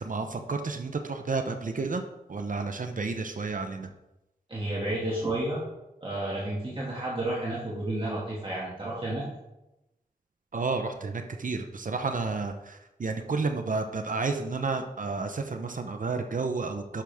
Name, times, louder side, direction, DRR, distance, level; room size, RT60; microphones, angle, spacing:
voice 1, 0.0-2.0 2.3-3.9 10.5-17.0, right 4 dB, 55° right, 6 dB, 0.7 m, -31 dB
voice 2, 4.5-5.6 6.0-9.2, right 1 dB, 35° right, -7 dB, 2.1 m, -31 dB
11.5 x 6.3 x 3.5 m, 0.94 s
wide cardioid pair, 105°, 16 cm